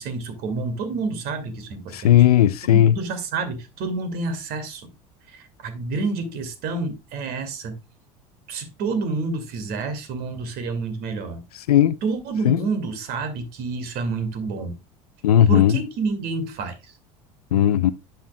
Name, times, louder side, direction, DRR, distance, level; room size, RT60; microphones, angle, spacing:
voice 1, 0.0-2.3 2.6-4.9 5.3-7.8 8.5-11.4 12.0-14.7 15.5-17.0, right 4 dB, 55° right, 2.1 m, -29 dB
voice 2, 1.9-3.0 11.7-12.0 12.4-12.6 15.2-15.8 17.5-17.9, left 11 dB, 85° left, 0.4 m, -16 dB
10.5 x 5.7 x 2.2 m
hypercardioid pair, 80°, 19 cm